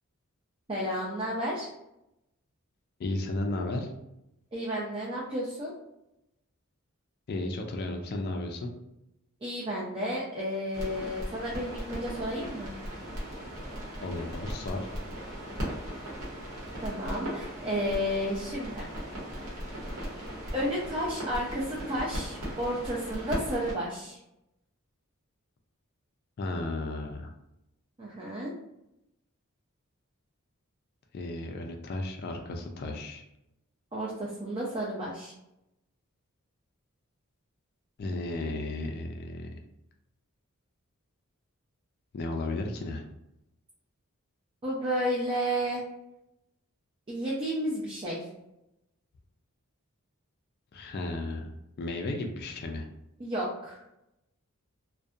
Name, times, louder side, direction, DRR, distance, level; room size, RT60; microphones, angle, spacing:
voice 1, 0.7-1.7 4.5-5.7 9.4-12.7 16.8-18.9 20.5-24.2 28.0-28.5 33.9-35.3 44.6-45.8 47.1-48.3 53.2-53.8, equal, 25° right, -5 dB, 0.4 m, -32 dB
voice 2, 3.0-3.9 7.3-8.7 14.0-14.8 26.4-27.3 31.1-33.2 38.0-39.6 42.1-43.0 50.7-51.5 51.8-52.9, left 2 dB, 45° left, 3 dB, 0.3 m, -34 dB
sound 1, 10.7-23.7, equal, 85° right, 0.9 m, -38 dB
2.6 x 2.1 x 2.3 m, 0.86 s
head